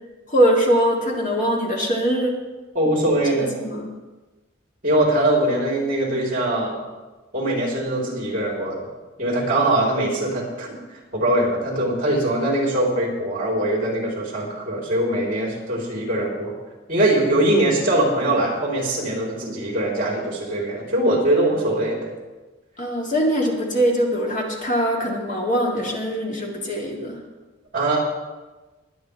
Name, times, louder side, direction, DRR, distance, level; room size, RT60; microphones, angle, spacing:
voice 1, 0.3-2.4 3.4-3.9 22.8-27.2, equal, 40° left, -1 dB, 2.1 m, -22 dB
voice 2, 2.7-3.5 4.8-6.8 7.3-8.9 9.2-16.5 16.9-22.1 27.7-28.0, right 1 dB, 40° right, -3 dB, 3.8 m, -22 dB
21.5 x 9.5 x 3.5 m, 1.2 s
head